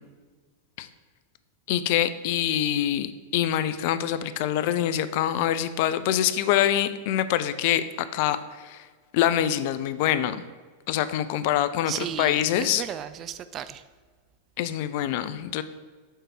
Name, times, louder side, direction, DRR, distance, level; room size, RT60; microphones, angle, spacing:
voice 1, 1.7-7.8 8.1-8.8 9.1-10.4 10.9-12.8 14.6-15.6, left 11 dB, 50° left, 13 dB, 0.4 m, -25 dB
voice 2, 11.9-13.8, right 9 dB, 30° right, 13 dB, 0.3 m, -34 dB
6.5 x 4.5 x 4.5 m, 1.4 s
figure-of-eight pair, 90°, 0 cm